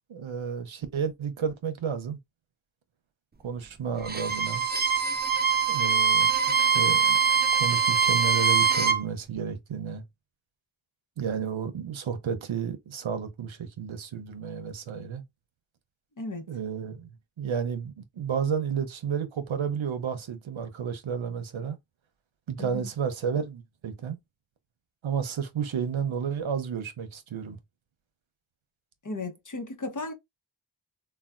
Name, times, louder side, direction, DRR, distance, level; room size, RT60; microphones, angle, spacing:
voice 1, 0.1-2.2 3.4-4.6 5.7-7.2 7.6-10.0 11.2-15.2 16.5-21.8 22.5-24.2 25.0-27.6, right 7 dB, 75° right, 0.7 m, -32 dB
Bowed string instrument, 4.0-9.0, right 6 dB, 25° right, 0.4 m, -23 dB
voice 2, 16.2-16.5 22.6-22.9 29.0-30.1, left 3 dB, 40° left, 0.8 m, -35 dB
3.3 x 2.2 x 2.4 m
wide cardioid pair, 45°, 47 cm